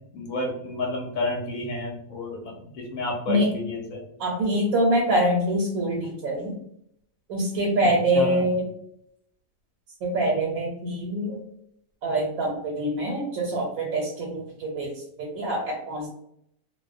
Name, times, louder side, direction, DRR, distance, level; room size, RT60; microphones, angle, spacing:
voice 1, 0.1-4.0 8.1-8.4, left 2 dB, 85° left, 1 dB, 1.0 m, -30 dB
voice 2, 4.2-6.6 7.3-8.7 10.0-11.4 12.0-16.1, right 1 dB, 90° right, -2 dB, 1.1 m, -25 dB
2.4 x 2.1 x 2.4 m, 0.72 s
omnidirectional pair, 1.4 m